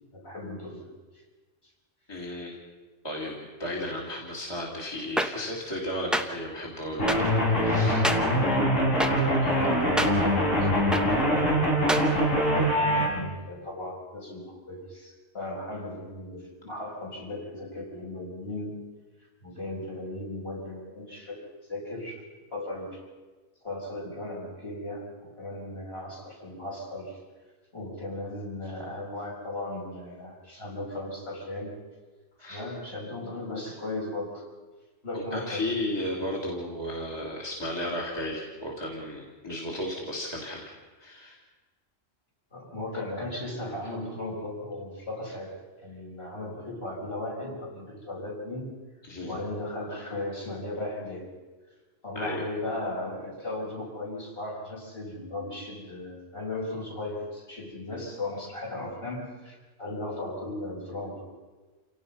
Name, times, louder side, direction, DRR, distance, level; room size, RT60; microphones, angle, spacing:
voice 1, 0.1-0.8 9.5-11.9 12.5-18.7 19.4-21.4 21.7-22.2 22.5-23.0 23.6-27.2 27.7-31.7 32.4-34.4 35.0-35.7 42.5-45.5 45.8-48.7 49.2-51.3 52.0-61.2, left 1 dB, 50° left, -4 dB, 6.5 m, -36 dB
voice 2, 2.1-2.6 3.0-7.3 7.5-8.0 9.4-9.5 32.4-32.6 35.1-41.4 49.0-49.4 52.1-52.5, left 1 dB, 20° left, -2 dB, 2.9 m, -34 dB
sound 1, 5.2-5.3 6.1-6.2 7.1-7.2 8.0-8.2 9.0-9.1 10.0-10.1 10.9-11.0 11.9-12.0, equal, ahead, 1.0 m, -25 dB
sound 2, 7.0-13.1, equal, 75° left, 5.1 m, -23 dB
28.0 x 17.5 x 5.7 m, 1.3 s
omnidirectional pair, 1.3 m